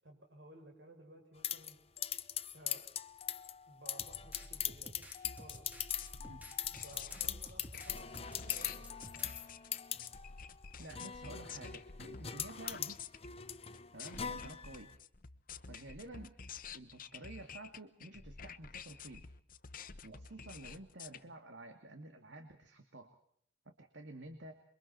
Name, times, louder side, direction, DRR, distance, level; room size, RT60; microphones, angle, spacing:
voice 1, 0.0-1.8 2.5-2.9 3.7-5.0 5.3-5.7 6.7-9.0, right 1 dB, 70° right, 2 dB, 7.7 m, -56 dB
sound 1, 1.4-15.0, left 9 dB, 35° left, 0.8 m, -42 dB
sound 2, 4.0-9.4, equal, 10° right, 3.6 m, -53 dB
sound 3, 5.2-21.2, left 6 dB, 50° left, 1.1 m, -50 dB
voice 2, 10.8-13.0 13.9-14.9 15.7-16.4 16.7-19.3 20.0-23.1 23.7-24.5, right 2 dB, 85° right, 6 dB, 2.3 m, -51 dB
28.0 x 23.5 x 4.4 m, 0.64 s
head